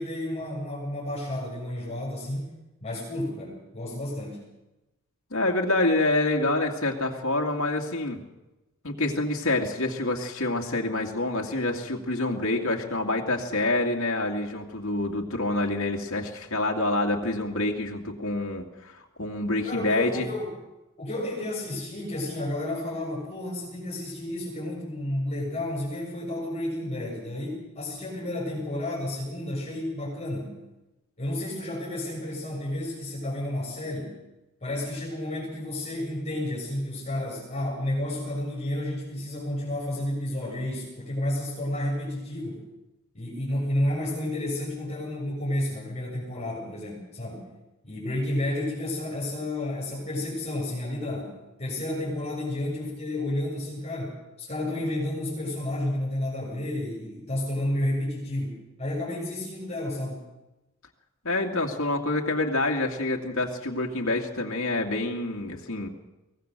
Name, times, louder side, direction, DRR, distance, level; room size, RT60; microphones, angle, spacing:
voice 1, 0.0-2.5 2.8-4.4 19.6-20.5 21.0-30.6 31.2-34.2 34.6-42.6 43.1-47.5 47.8-60.2, left 1 dB, 30° left, -4 dB, 7.0 m, -31 dB
voice 2, 5.3-8.2 8.8-20.3 61.2-65.9, left 2 dB, 70° left, 0 dB, 2.4 m, -27 dB
24.0 x 18.0 x 6.8 m, 1.0 s
head